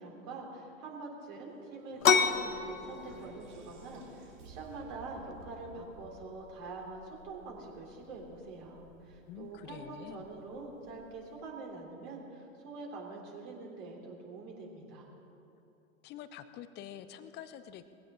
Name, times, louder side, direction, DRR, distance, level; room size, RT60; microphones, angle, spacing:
voice 1, 0.0-15.1, right 3 dB, 40° right, 0 dB, 3.5 m, -45 dB
sound 1, 1.5-6.9, right 4 dB, 60° right, 2.6 m, -55 dB
sound 2, 2.0-11.4, left 6 dB, 75° left, 0.9 m, -35 dB
voice 2, 9.3-10.3 16.0-17.8, left 10 dB, 25° left, 12 dB, 0.8 m, -47 dB
20.5 x 15.5 x 3.9 m, 2.7 s
figure-of-eight pair, 95°, 41 cm